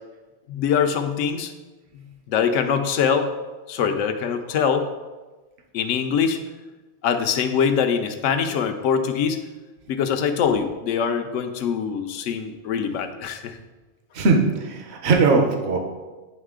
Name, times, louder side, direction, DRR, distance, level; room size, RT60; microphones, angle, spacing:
voice 1, 0.5-1.5 2.3-3.3 3.7-4.9 5.7-6.4 7.0-9.4 9.9-13.6, left 7 dB, 90° left, 7 dB, 0.9 m, -23 dB
voice 2, 14.1-15.8, right 4 dB, 65° right, 3 dB, 1.0 m, -19 dB
9.3 x 3.2 x 3.6 m, 1.2 s
omnidirectional pair, 1.2 m